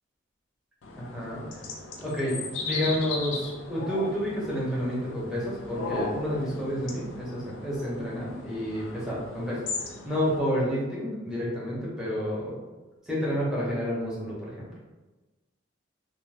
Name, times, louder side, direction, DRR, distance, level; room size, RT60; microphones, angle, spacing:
sound 1, 0.8-10.4, left 3 dB, 80° left, 0.4 m, -37 dB
voice 1, 1.0-1.4 2.0-12.6 13.0-14.7, equal, 5° right, -7 dB, 0.8 m, -30 dB
2.5 x 2.0 x 3.2 m, 1.2 s
head